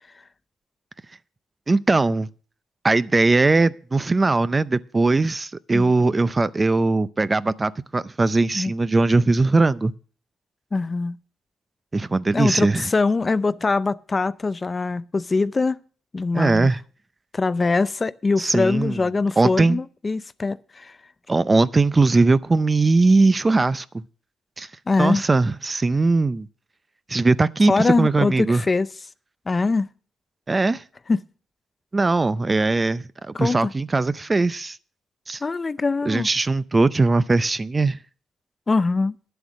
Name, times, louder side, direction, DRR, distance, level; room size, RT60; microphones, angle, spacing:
voice 1, 1.7-2.3 2.8-9.9 11.9-12.9 16.3-16.8 18.4-19.0 19.4-19.8 21.3-23.9 24.6-24.7 25.0-26.5 27.1-28.6 30.5-30.8 31.9-34.8 35.3-35.4 36.1-38.0, right 3 dB, 25° right, 0.5 m, -20 dB
voice 2, 10.7-11.2 12.3-15.8 16.1-16.7 17.3-20.9 24.9-25.2 27.7-28.9 29.5-29.9 31.1-31.2 33.3-33.7 35.4-36.3 38.7-39.1, left 3 dB, 30° left, 0.4 m, -23 dB
10.5 x 7.9 x 6.2 m
cardioid pair, 90°, 0 cm